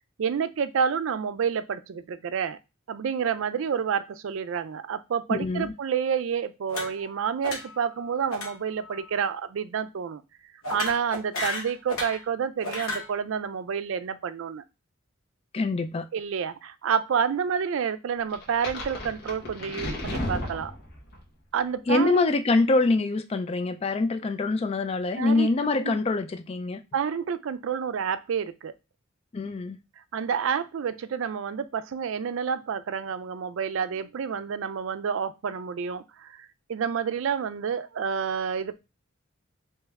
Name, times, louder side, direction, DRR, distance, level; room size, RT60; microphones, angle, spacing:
voice 1, 0.2-2.6 2.9-10.2 10.7-14.6 16.1-20.7 21.5-22.3 25.2-25.5 25.8-25.9 26.9-28.7 30.1-38.8, right 7 dB, 70° right, 0.4 m, -29 dB
voice 2, 5.3-5.7 15.5-16.1 21.9-26.8 29.3-29.8, left 3 dB, 30° left, 0.3 m, -25 dB
sound 1, 6.7-7.2 7.4-7.9 8.3-8.5 8.8-9.1 10.6-12.2 12.6-13.1, left 2 dB, 90° left, 0.9 m, -33 dB
sound 2, 18.3-21.2, left 1 dB, 50° left, 1.1 m, -34 dB
3.3 x 2.9 x 3.5 m
head